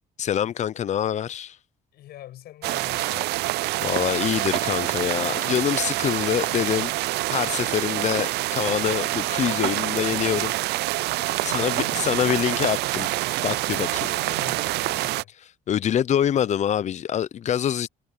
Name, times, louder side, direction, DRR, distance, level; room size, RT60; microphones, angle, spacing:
voice 1, 0.2-1.6 3.8-6.9 7.3-10.5 11.2-13.9 15.7-17.9, left 9 dB, 45° left, 0.6 m, -25 dB
voice 2, 1.9-3.4 11.4-12.1 13.7-15.3 17.5-17.9, left 13 dB, 70° left, 6.5 m, -43 dB
sound 1, 2.6-15.2, right 18 dB, 80° right, 0.5 m, -26 dB
cardioid pair, 110°, 17 cm